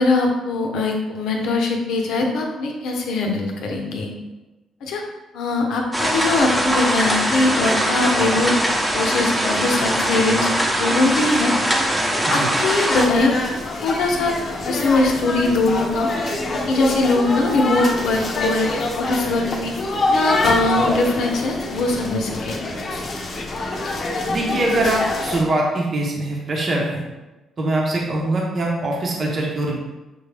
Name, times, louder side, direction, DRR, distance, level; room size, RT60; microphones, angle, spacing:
voice 1, 0.0-4.1 4.8-5.0 5.3-8.5 8.9-10.5 10.8-11.5 12.1-13.3 13.8-14.3 14.6-16.1 16.5-19.7 20.1-22.6, left 2 dB, 80° left, 1 dB, 0.7 m, -21 dB
sound 1, 5.9-13.1, equal, 5° right, 0.8 m, -21 dB
sound 2, 12.9-25.4, left 2 dB, 45° left, 0.7 m, -25 dB
voice 2, 24.3-27.0 27.6-29.8, right 1 dB, 45° right, -2 dB, 0.8 m, -22 dB
6.1 x 2.2 x 3.3 m, 1.1 s
cardioid pair, 90°, 0 cm